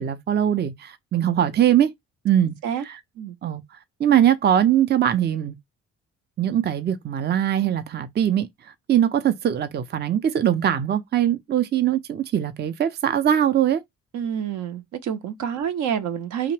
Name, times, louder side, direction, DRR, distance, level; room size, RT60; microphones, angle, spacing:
voice 1, 0.0-1.9 2.2-2.5 2.9-3.0 3.4-3.6 4.0-5.6 6.4-13.8, right 10 dB, 35° right, 0.5 m, -21 dB
voice 2, 14.1-16.5, right 8 dB, 75° right, 0.7 m, -28 dB
2.8 x 2.1 x 3.1 m
cardioid pair, 90°, 30 cm